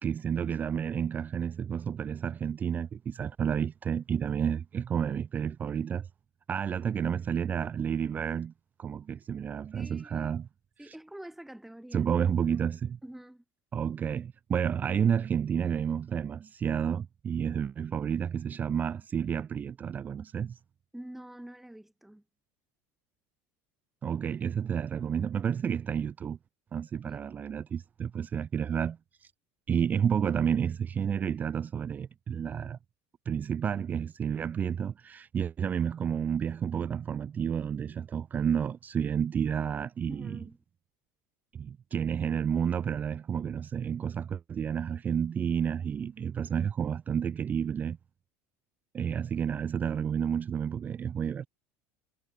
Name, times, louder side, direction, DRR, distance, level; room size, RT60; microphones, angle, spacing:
voice 1, 0.0-6.1 6.5-8.5 8.8-10.5 10.8-10.9 11.9-13.0 13.7-20.6 24.0-26.4 26.7-29.3 29.7-32.8 33.3-40.4 41.5-48.0 48.9-51.5, right 8 dB, 25° right, 0.5 m, -30 dB
voice 2, 9.7-10.3 10.8-12.1 13.0-13.4 20.9-22.2 27.0-27.4 40.1-40.6, right 1 dB, 5° right, 2.4 m, -46 dB
cardioid pair, 145°, 7 cm